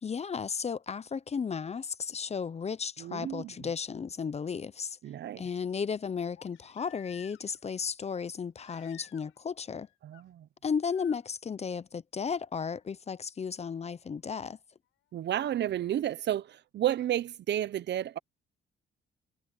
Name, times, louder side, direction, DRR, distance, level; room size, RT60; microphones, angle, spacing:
voice 1, 0.0-5.0 5.4-9.9 10.6-14.6, left 6 dB, 30° left, 0.7 m, -34 dB
voice 2, 3.0-3.5 5.0-5.4 10.0-10.5 15.1-18.2, right 11 dB, 60° right, 0.7 m, -31 dB
Crying sobbing, 3.6-3.7 6.3-7.7 8.6-9.4 9.7-10.2 10.8-11.2 12.8-12.9, left 15 dB, 85° left, 6.0 m, -56 dB
cardioid pair, 90°, 20 cm